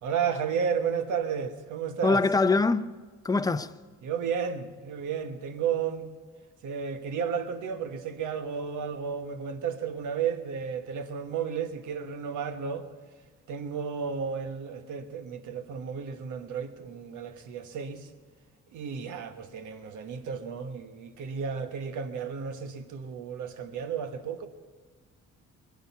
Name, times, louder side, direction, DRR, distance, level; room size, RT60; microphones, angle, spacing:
voice 1, 0.0-2.2 4.0-6.1 6.6-12.9 13.5-18.1 18.7-24.5, right 7 dB, 80° right, 1.3 m, -33 dB
voice 2, 2.0-2.9 3.2-3.7, left 3 dB, 10° left, 0.5 m, -23 dB
21.5 x 10.5 x 5.8 m
cardioid pair, 90°, 30 cm